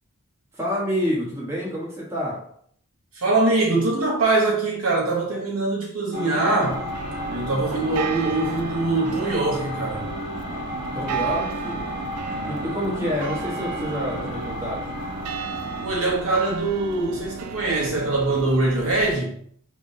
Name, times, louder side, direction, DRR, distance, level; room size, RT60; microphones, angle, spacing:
voice 1, 0.5-2.4 10.9-11.8 12.5-14.8, equal, 15° right, 1.2 m, -28 dB
voice 2, 3.1-6.8 7.3-10.1 15.8-19.4, right 2 dB, 70° right, 1.4 m, -23 dB
sound 1, 6.1-15.9, left 1 dB, 40° right, 1.5 m, -33 dB
sound 2, 6.6-19.2, right 6 dB, 90° right, 0.4 m, -35 dB
5.1 x 3.5 x 2.7 m
head